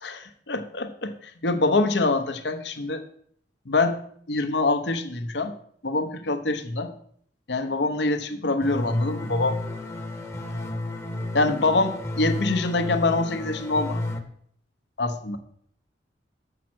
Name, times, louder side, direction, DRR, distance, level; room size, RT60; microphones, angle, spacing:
voice 1, 0.0-3.0 3.7-4.0 4.3-5.5 5.8-6.9 7.5-9.6 11.3-14.0 15.0-15.4, left 2 dB, 65° left, 8 dB, 1.0 m, -25 dB
sound 1, 8.6-14.2, left 1 dB, 15° left, 0.9 m, -32 dB
7.4 x 5.8 x 6.1 m, 0.63 s
head